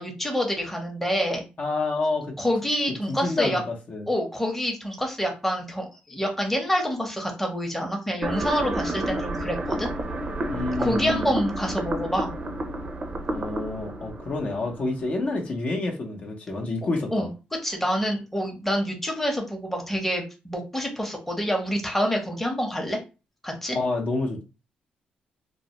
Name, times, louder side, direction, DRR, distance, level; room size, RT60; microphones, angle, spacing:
voice 1, 0.0-1.4 2.4-3.6 4.1-9.9 10.8-12.3 17.1-17.3 17.6-23.0 23.4-23.8, equal, 5° left, 1 dB, 0.8 m, -27 dB
voice 2, 1.6-2.4 3.1-4.1 10.5-11.3 13.3-17.3 23.7-24.4, left 2 dB, 55° left, 0 dB, 0.7 m, -28 dB
sound 1, 8.2-15.2, right 1 dB, 40° right, 0.5 m, -30 dB
2.2 x 2.0 x 2.8 m, 0.30 s
cardioid pair, 70°, 3 cm